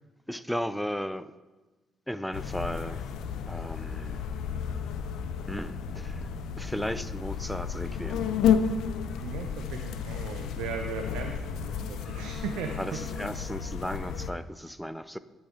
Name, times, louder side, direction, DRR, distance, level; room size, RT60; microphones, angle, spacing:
voice 1, 0.3-1.3 2.1-3.0 3.5-4.2 5.5-6.3 6.6-8.3 12.0-12.3 12.8-15.2, equal, ahead, 13 dB, 0.3 m, -35 dB
sound 1, 2.3-14.3, left 7 dB, 75° left, 0.4 m, -32 dB
voice 2, 9.2-13.1, right 6 dB, 85° right, 4 dB, 0.5 m, -37 dB
8.5 x 5.4 x 3.5 m, 1.2 s
cardioid pair, 75°, 0 cm